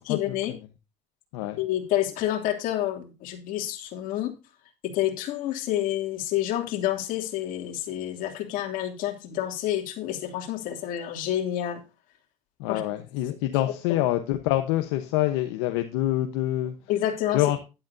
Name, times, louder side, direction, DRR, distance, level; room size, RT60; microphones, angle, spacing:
voice 1, 0.0-0.5 1.6-4.3 4.8-11.8 12.7-12.8 13.9-14.0 16.9-17.4, left 12 dB, 70° left, 3.0 m, -28 dB
voice 2, 12.6-16.7 17.3-17.6, left 14 dB, 90° left, 1.1 m, -26 dB
11.5 x 11.5 x 2.8 m
supercardioid pair, 100°, 15 cm